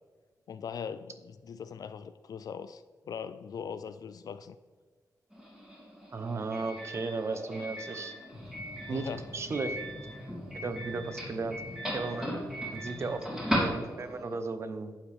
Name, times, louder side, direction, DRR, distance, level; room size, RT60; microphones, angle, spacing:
voice 1, 0.5-4.6 8.9-9.2, left 7 dB, 65° left, 11 dB, 0.4 m, -40 dB
Doorbell, 5.3-14.3, equal, 10° right, 3.0 m, -37 dB
voice 2, 6.1-8.1 8.9-9.8 10.6-11.6 11.9-12.3 12.7-13.3 13.5-14.9, right 3 dB, 40° right, 9 dB, 0.9 m, -35 dB
sound 1, 8.3-13.8, left 2 dB, 40° left, 1.7 m, -46 dB
11.5 x 8.7 x 3.4 m, 1.4 s
wide cardioid pair, 140°, 7 cm